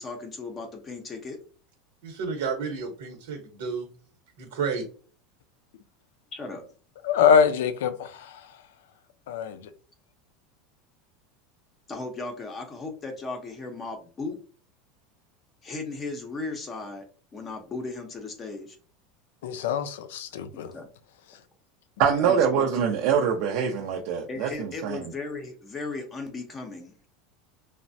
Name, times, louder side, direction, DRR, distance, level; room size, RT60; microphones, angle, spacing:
voice 1, 0.0-1.4 6.3-6.6 11.9-14.4 15.6-17.0 17.3-18.7 20.5-20.9 22.2-22.7 24.3-26.9, left 3 dB, 20° left, 0.5 m, -36 dB
voice 2, 2.0-3.9 4.4-4.8, right 5 dB, 80° right, 0.9 m, -31 dB
voice 3, 7.0-8.1 9.3-9.6 19.4-20.7, left 7 dB, 85° left, 0.4 m, -23 dB
voice 4, 22.0-25.0, right 7 dB, 60° right, 0.4 m, -24 dB
3.2 x 2.1 x 2.6 m
supercardioid pair, 150°, 0 cm